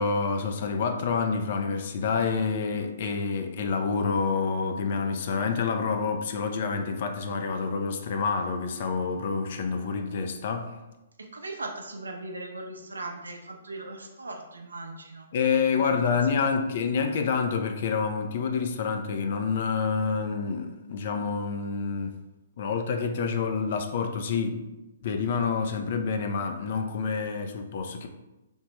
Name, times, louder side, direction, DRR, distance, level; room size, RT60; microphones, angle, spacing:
voice 1, 0.0-10.8 15.3-22.2 22.6-24.7 25.0-28.1, left 5 dB, 50° left, 6 dB, 0.3 m, -28 dB
voice 2, 11.2-15.3 15.7-16.6, right 2 dB, 85° right, 3 dB, 0.5 m, -39 dB
3.4 x 2.0 x 2.9 m, 1.0 s
figure-of-eight pair, 130°, 0 cm